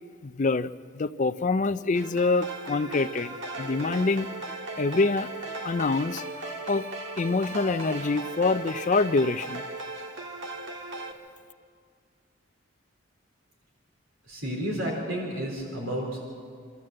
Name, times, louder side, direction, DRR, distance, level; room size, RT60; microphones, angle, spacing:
voice 1, 0.2-0.7 0.9-4.3 4.8-5.3 5.6-6.2 6.7-6.9 7.2-9.6, left 3 dB, 40° left, 13 dB, 0.5 m, -25 dB
sound 1, 1.9-11.1, right 2 dB, 60° right, 1.7 m, -37 dB
voice 2, 14.3-16.2, equal, 80° right, -1 dB, 3.9 m, -31 dB
26.5 x 13.5 x 7.7 m, 2.1 s
head